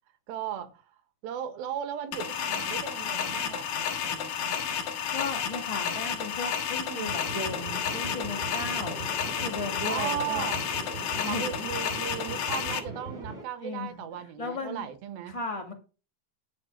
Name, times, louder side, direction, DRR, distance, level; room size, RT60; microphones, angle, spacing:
voice 1, 0.3-1.0 1.2-4.7 6.9-7.1 9.9-10.6 11.2-15.4, right 9 dB, 90° right, 3.2 m, -36 dB
sound 1, 2.1-12.8, left 8 dB, 75° left, 3.1 m, -31 dB
voice 2, 5.1-9.0 9.3-10.5 11.1-11.7 13.6-14.0 14.4-14.9 15.3-15.7, left 3 dB, 10° left, 2.1 m, -36 dB
sound 2, 7.1-13.4, right 3 dB, 20° right, 2.4 m, -40 dB
12.0 x 4.8 x 6.6 m
omnidirectional pair, 4.1 m